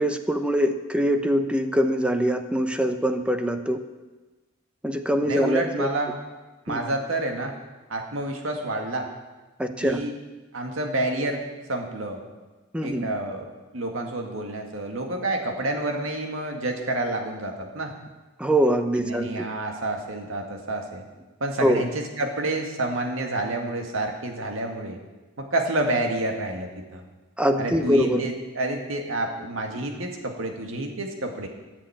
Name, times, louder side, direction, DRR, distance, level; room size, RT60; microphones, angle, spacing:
voice 1, 0.0-3.8 4.8-5.9 6.7-6.8 9.6-10.0 12.7-13.1 18.4-19.5 21.6-21.8 27.4-28.3, equal, 5° right, 7 dB, 0.8 m, -23 dB
voice 2, 5.3-6.2 6.7-7.5 7.9-9.1 9.8-10.1 10.5-11.4 11.7-12.2 12.8-13.5 13.7-17.9 19.0-21.0 21.4-25.0 25.4-27.0 27.6-31.5, right 2 dB, 80° right, 3 dB, 2.1 m, -29 dB
13.5 x 7.6 x 8.7 m, 1.2 s
head